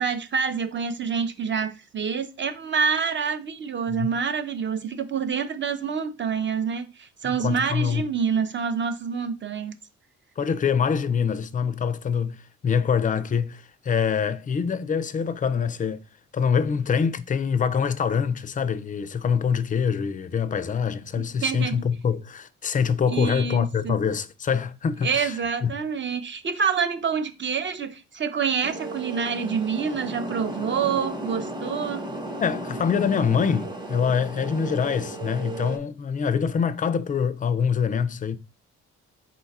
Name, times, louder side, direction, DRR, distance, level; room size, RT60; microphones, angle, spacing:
voice 1, 0.0-9.7 21.4-21.9 23.1-24.0 25.0-32.1, right 6 dB, 40° right, 0.6 m, -27 dB
voice 2, 7.2-8.0 10.4-16.0 16.3-25.7 32.4-38.4, left 6 dB, 25° left, 0.4 m, -25 dB
sound 1, 28.6-35.8, right 1 dB, 15° right, 0.9 m, -34 dB
4.0 x 2.3 x 4.1 m
cardioid pair, 90°, 30 cm